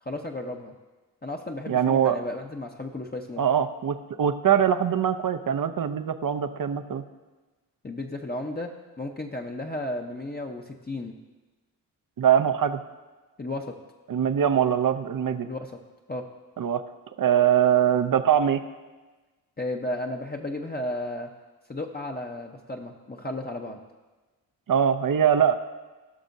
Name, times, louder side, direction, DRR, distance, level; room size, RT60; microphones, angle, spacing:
voice 1, 0.0-0.7 1.2-3.4 7.8-8.7 9.0-11.1 13.4-13.7 15.4-15.7 16.1-16.2 19.6-21.3 21.7-23.8, left 1 dB, 20° left, 1 dB, 0.9 m, -33 dB
voice 2, 1.7-2.2 3.4-7.0 12.2-12.8 14.1-15.5 16.6-16.8 17.2-18.6 24.7-25.5, right 9 dB, 50° right, 9 dB, 0.8 m, -22 dB
17.5 x 6.1 x 2.7 m, 1.2 s
supercardioid pair, 40°, 44 cm